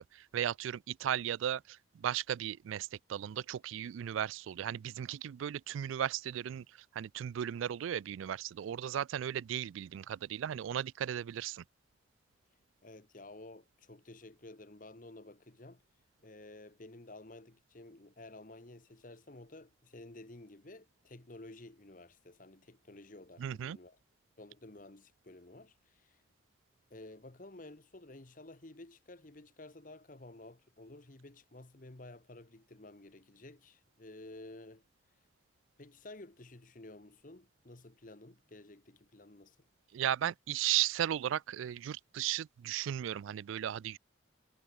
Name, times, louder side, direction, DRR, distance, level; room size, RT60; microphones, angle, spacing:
voice 1, 0.0-11.6 23.4-23.8 39.9-44.0, right 10 dB, 85° right, 0.3 m, -36 dB
voice 2, 12.8-15.8 16.2-24.0 24.4-26.2 26.9-34.8 35.8-39.7, left 2 dB, 45° left, 1.2 m, -52 dB
head